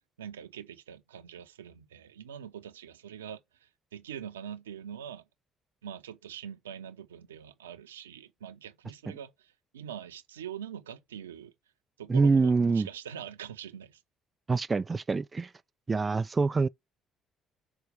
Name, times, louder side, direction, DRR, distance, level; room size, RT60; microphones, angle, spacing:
voice 1, 0.2-3.4 3.9-5.2 5.8-11.5 12.0-14.0, right 9 dB, 85° right, 0.8 m, -43 dB
voice 2, 12.1-12.9 14.5-15.5 15.9-16.7, right 4 dB, 30° right, 0.4 m, -25 dB
6.1 x 4.7 x 6.7 m
hypercardioid pair, 50°, 0 cm